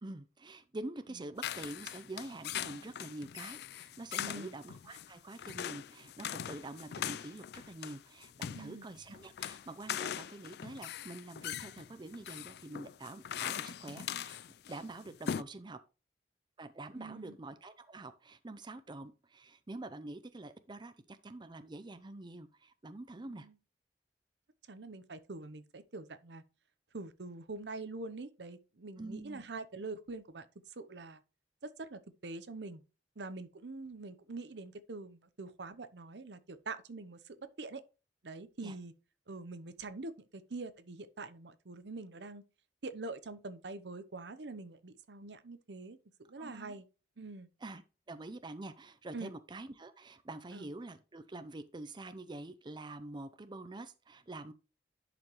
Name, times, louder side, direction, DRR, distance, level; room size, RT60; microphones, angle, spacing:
voice 1, 0.0-14.4 14.7-15.8 16.6-23.5 29.0-29.5 38.6-38.8 46.4-46.8 47.6-47.8 48.1-54.5, right 2 dB, 25° right, 0.6 m, -46 dB
sound 1, 1.4-14.8 15.1-15.4, left 9 dB, 65° left, 0.4 m, -41 dB
voice 2, 4.2-4.5 8.5-8.9 16.9-17.4 23.2-23.5 24.7-26.4 26.9-30.5 30.8-31.2 31.6-32.8 33.2-37.8 38.2-38.9 39.3-42.4 42.8-46.9 47.2-47.5 49.1-49.3 50.5-50.7, right 3 dB, 75° right, 0.8 m, -45 dB
10.5 x 5.1 x 3.1 m
head